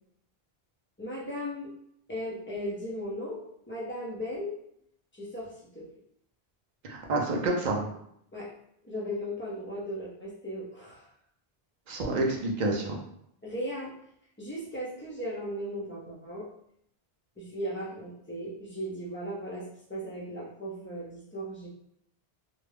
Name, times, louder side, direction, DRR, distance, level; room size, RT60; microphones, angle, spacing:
voice 1, 1.0-1.7 2.1-4.5 5.1-5.8 8.3-8.5 8.8-11.1 13.4-13.9 14.4-16.5 17.4-21.7, equal, 15° left, -5 dB, 0.4 m, -37 dB
voice 2, 6.8-7.9 11.9-13.0, right 2 dB, 55° right, 0 dB, 0.6 m, -28 dB
2.3 x 2.1 x 3.2 m, 0.72 s
omnidirectional pair, 1.0 m